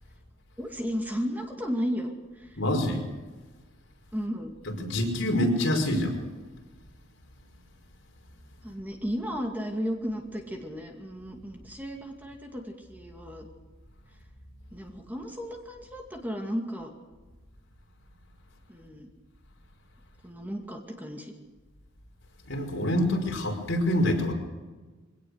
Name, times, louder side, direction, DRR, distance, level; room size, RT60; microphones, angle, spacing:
voice 1, 0.6-2.6 4.1-4.5 8.6-13.5 14.7-16.9 18.7-19.1 20.2-21.4, equal, 10° right, 2 dB, 2.4 m, -34 dB
voice 2, 2.6-3.0 4.8-6.2 22.5-24.3, left 1 dB, 65° left, 1 dB, 5.3 m, -26 dB
23.0 x 18.0 x 6.6 m, 1.3 s
head